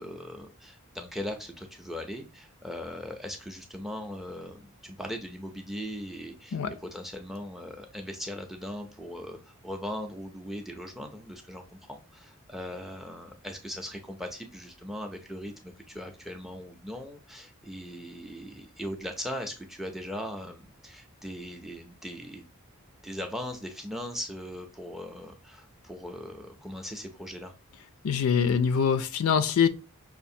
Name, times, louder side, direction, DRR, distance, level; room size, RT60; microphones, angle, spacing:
voice 1, 0.0-22.4 23.0-27.5, equal, ahead, 0.4 m, -39 dB
voice 2, 28.0-29.7, left 7 dB, 70° left, 0.4 m, -24 dB
5.6 x 2.5 x 2.6 m
head